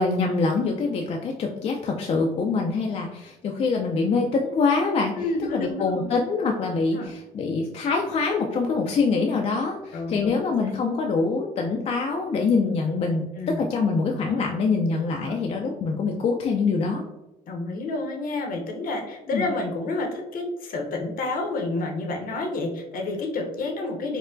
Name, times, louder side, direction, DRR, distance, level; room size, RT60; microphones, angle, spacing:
voice 1, 0.0-5.2 5.5-17.0 19.3-19.5, left 4 dB, 40° left, 1 dB, 0.4 m, -24 dB
voice 2, 5.2-6.2 6.9-7.1 9.9-10.3 13.3-13.6 15.1-15.4 17.5-24.2, left 2 dB, 60° left, 3 dB, 0.8 m, -29 dB
4.3 x 2.1 x 2.5 m, 0.96 s
cardioid pair, 110°, 17 cm